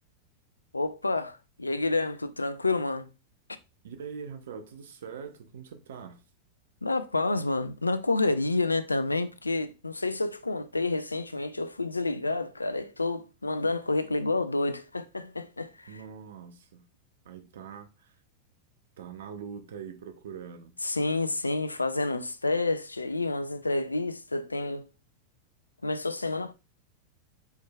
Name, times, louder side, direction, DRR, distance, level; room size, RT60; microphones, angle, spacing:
voice 1, 0.7-3.1 6.8-15.9 20.8-24.9 25.8-26.5, left 2 dB, 80° left, 0.4 m, -29 dB
voice 2, 3.8-6.2 15.9-16.9 17.2-18.2 19.0-20.8, right 7 dB, 60° right, 0.7 m, -43 dB
4.5 x 4.4 x 2.3 m
figure-of-eight pair, 90°, 0 cm